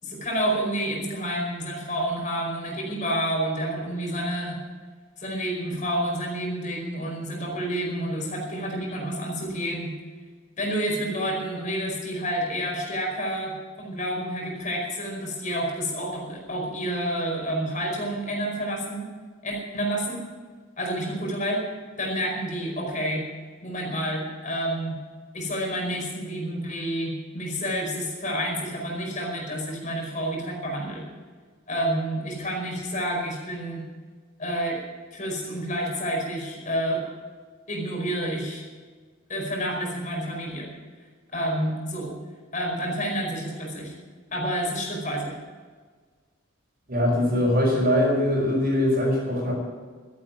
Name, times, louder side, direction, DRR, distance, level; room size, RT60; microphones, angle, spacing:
voice 1, 0.0-4.6 5.2-9.9 10.6-19.1 19.4-20.2 20.8-21.6 22.0-23.3 23.6-25.0 25.3-31.1 31.7-33.9 34.4-34.8 35.1-37.0 37.7-38.6 39.3-40.7 41.3-42.2 42.5-43.9 44.3-45.4, equal, 40° left, 0 dB, 4.9 m, -29 dB
voice 2, 46.9-49.5, left 1 dB, 45° right, -6 dB, 5.1 m, -22 dB
13.5 x 11.0 x 9.1 m, 1.5 s
head